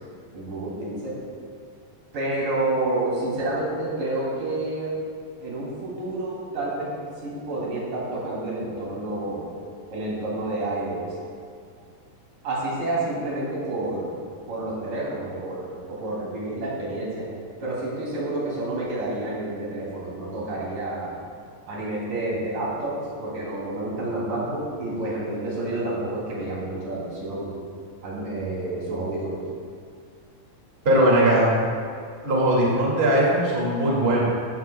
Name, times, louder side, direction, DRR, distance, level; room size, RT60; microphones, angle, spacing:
voice 1, 0.3-1.2 2.1-4.9 5.4-6.9 7.2-9.5 9.9-11.1 12.4-14.1 14.5-17.3 17.6-21.2 21.7-27.5 28.0-29.4, right 2 dB, 65° right, -6 dB, 4.6 m, -29 dB
voice 2, 30.8-31.6 32.2-34.3, right 1 dB, 20° right, -5 dB, 2.1 m, -19 dB
16.5 x 13.0 x 2.4 m, 2.3 s
omnidirectional pair, 4.1 m